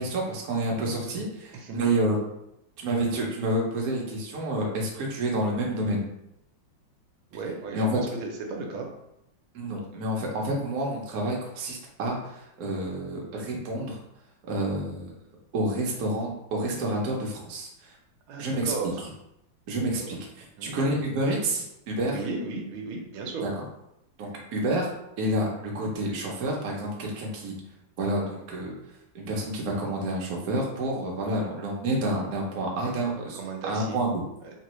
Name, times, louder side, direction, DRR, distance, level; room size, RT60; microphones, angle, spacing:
voice 1, 0.0-2.2 2.8-6.1 7.7-8.0 9.5-14.0 14.5-15.1 15.5-17.9 18.4-18.7 19.7-20.2 20.6-22.2 23.4-23.6 24.2-27.6 28.0-28.7 29.1-34.2, right 1 dB, 55° right, -2 dB, 1.1 m, -29 dB
voice 2, 1.5-1.8 7.3-8.9 18.3-19.0 20.0-20.2 20.6-20.7 22.1-23.5 33.3-34.0, right 3 dB, 85° right, 1 dB, 1.5 m, -35 dB
3.6 x 3.2 x 3.1 m, 0.82 s
omnidirectional pair, 2.2 m